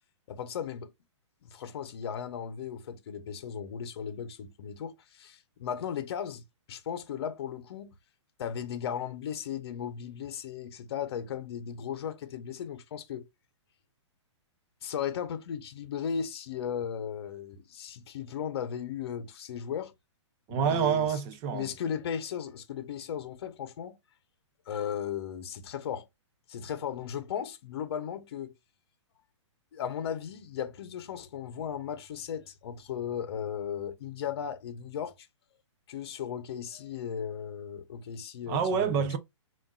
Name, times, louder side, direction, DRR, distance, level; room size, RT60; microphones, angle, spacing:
voice 1, 0.3-0.9 1.4-7.9 8.4-13.3 14.8-19.9 20.5-21.2 21.5-24.0 24.7-26.1 26.5-28.5 29.7-35.3 35.9-39.1, left 8 dB, 55° left, 0.8 m, -36 dB
voice 2, 20.5-21.7 38.5-39.2, right 7 dB, 20° right, 0.4 m, -27 dB
7.2 x 2.5 x 2.3 m
hypercardioid pair, 160°, 16 cm